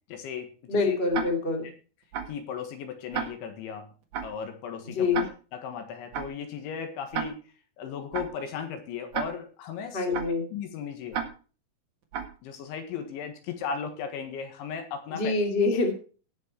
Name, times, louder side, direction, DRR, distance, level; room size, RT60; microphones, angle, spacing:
voice 1, 0.1-0.5 0.9-1.0 2.3-3.9 4.2-5.1 5.6-7.4 7.8-10.2 10.5-11.2 12.4-15.3, left 7 dB, 70° left, 6 dB, 3.7 m, -36 dB
voice 2, 0.7-1.7 4.8-5.3 9.9-10.4 15.1-15.9, left 4 dB, 35° left, 2 dB, 1.0 m, -25 dB
Tick-tock, 1.1-1.3 2.1-2.3 3.1-3.3 4.1-4.3 5.1-5.3 6.1-6.3 7.1-7.3 8.1-8.3 9.1-9.3 10.1-10.3 11.1-11.3 12.1-12.3, right 8 dB, 85° right, 1.6 m, -30 dB
18.0 x 6.3 x 4.5 m, 0.38 s
omnidirectional pair, 6.0 m